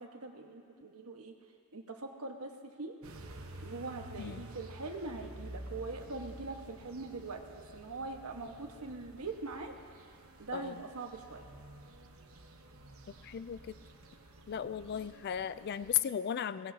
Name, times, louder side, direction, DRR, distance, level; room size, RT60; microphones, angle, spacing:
voice 1, 0.0-1.3 1.7-2.5 2.8-2.9 3.6-7.4 7.7-9.7 10.4-11.4, right 3 dB, 85° right, 3 dB, 1.3 m, -42 dB
sound 1, 3.0-16.0, right 1 dB, 65° right, 1.0 m, -51 dB
voice 2, 13.2-13.7 14.5-16.7, left 9 dB, 45° left, 15 dB, 0.3 m, -35 dB
22.0 x 19.0 x 2.8 m, 2.3 s
head